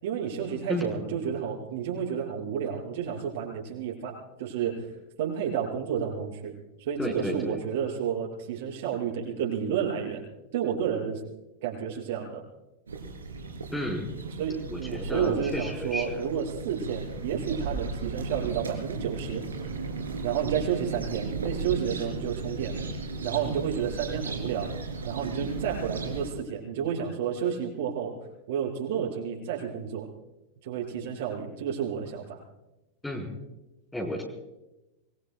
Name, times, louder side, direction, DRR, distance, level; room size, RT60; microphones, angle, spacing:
voice 1, 0.0-4.9 5.2-6.5 6.8-10.2 10.5-11.2 11.6-12.4 14.4-19.4 20.2-22.7 23.2-24.7 25.0-28.1 28.5-30.1 30.6-32.4, right 8 dB, 55° right, -2 dB, 6.2 m, -31 dB
voice 2, 7.0-7.6 13.7-14.1 14.7-16.2 33.0-33.3 33.9-34.2, left 1 dB, 5° left, 0 dB, 4.6 m, -32 dB
sound 1, 12.9-26.3, right 4 dB, 70° right, 3.3 m, -35 dB
26.5 x 23.0 x 2.3 m, 0.97 s
figure-of-eight pair, 90°, 0 cm